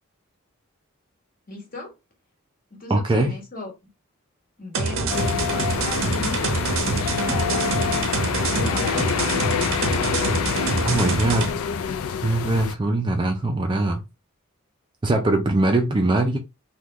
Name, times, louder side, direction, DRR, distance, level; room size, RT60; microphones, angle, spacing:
voice 1, 1.5-1.9 2.7-3.7 4.6-5.4 5.8-6.6 7.1-8.0 8.5-9.2, left 3 dB, 40° left, 1.3 m, -36 dB
voice 2, 2.9-3.3 10.8-11.5 12.2-14.0 15.0-16.4, right 2 dB, 20° right, 0.3 m, -21 dB
sound 1, 4.7-11.5, right 3 dB, 65° right, 0.6 m, -26 dB
sound 2, 5.1-12.7, left 7 dB, 80° left, 0.4 m, -26 dB
3.6 x 2.2 x 2.9 m
head